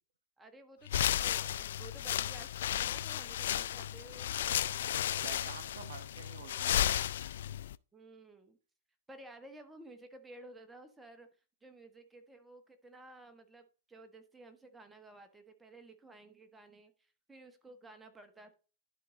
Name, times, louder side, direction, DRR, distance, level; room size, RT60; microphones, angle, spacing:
voice 1, 0.4-4.4 7.9-8.6 9.1-11.3 11.6-18.5, right 2 dB, 10° right, 1.2 m, -54 dB
sound 1, 0.9-7.8, left 11 dB, 75° left, 0.3 m, -34 dB
voice 2, 5.0-7.0, right 6 dB, 75° right, 1.5 m, -49 dB
11.5 x 4.7 x 3.8 m
hypercardioid pair, 130°, 0 cm